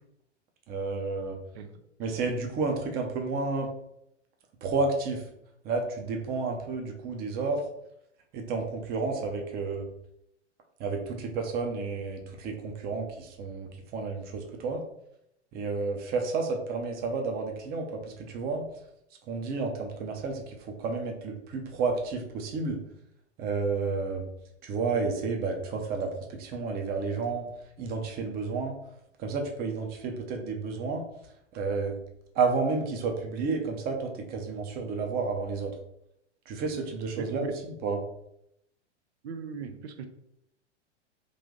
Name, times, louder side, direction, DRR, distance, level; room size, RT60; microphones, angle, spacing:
voice 1, 0.7-1.4 2.0-3.7 4.6-5.2 5.6-7.6 8.3-9.8 10.8-14.8 15.5-18.7 19.3-22.8 23.4-24.3 24.6-27.5 27.8-28.7 29.2-31.0 31.5-31.9 32.3-35.7 36.5-38.0, right 4 dB, 25° right, 3 dB, 0.7 m, -31 dB
voice 2, 37.2-37.5 39.2-40.1, right 6 dB, 65° right, 7 dB, 0.7 m, -38 dB
3.3 x 2.6 x 3.7 m, 0.77 s
figure-of-eight pair, 100°, 35 cm